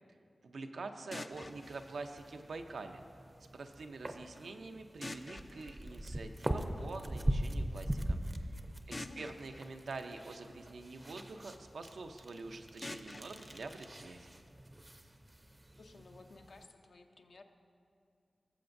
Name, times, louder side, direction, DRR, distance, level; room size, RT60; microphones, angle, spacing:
voice 1, 0.4-3.0 3.5-8.5 8.9-14.3, right 3 dB, 90° right, 6 dB, 0.6 m, -46 dB
sound 1, 1.1-3.1 5.0-7.0 8.9-11.1 12.8-14.8, left 2 dB, 30° left, 0.3 m, -50 dB
sound 2, 1.3-16.6, right 1 dB, 20° right, 0.5 m, -42 dB
voice 2, 8.8-9.3 15.8-17.4, left 3 dB, 70° left, 5 dB, 0.6 m, -56 dB
17.5 x 7.8 x 2.6 m, 2.6 s
wide cardioid pair, 120°, 0 cm